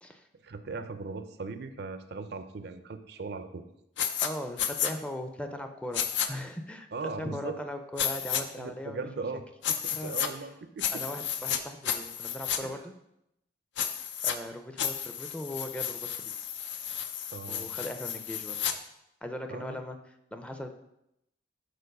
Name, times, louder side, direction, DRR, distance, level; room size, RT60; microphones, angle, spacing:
voice 1, 0.4-3.6 6.9-7.6 8.6-11.0 12.6-12.8 17.3-17.7 19.5-19.8, right 4 dB, 65° right, 10 dB, 0.5 m, -39 dB
sound 1, 4.0-4.3 4.6-4.9 5.9-6.3 8.0-8.4 9.6-10.3 10.8-11.6 11.8-12.6 13.8-14.3 14.8-18.7, left 9 dB, 80° left, 0.5 m, -32 dB
voice 2, 4.2-6.9 7.2-9.1 10.0-10.2 10.9-12.9 14.2-16.3 17.5-18.6 19.2-20.0 20.3-20.7, left 1 dB, 5° left, 6 dB, 0.5 m, -39 dB
6.7 x 4.2 x 5.3 m, 0.83 s
head